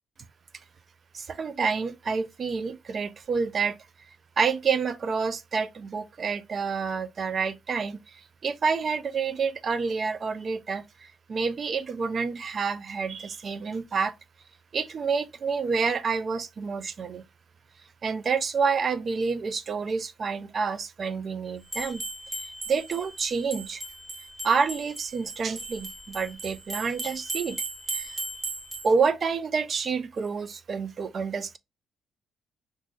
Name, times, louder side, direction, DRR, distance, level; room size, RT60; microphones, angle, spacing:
voice 1, 1.1-3.8 4.4-14.1 14.7-17.2 18.0-22.0 22.7-23.8 24.4-27.6 27.9-28.2 28.8-31.6, right 5 dB, 45° right, 0.4 m, -28 dB
sound 1, 21.7-28.9, right 2 dB, 15° right, 0.9 m, -37 dB
2.5 x 2.3 x 3.7 m
cardioid pair, 90°, 0 cm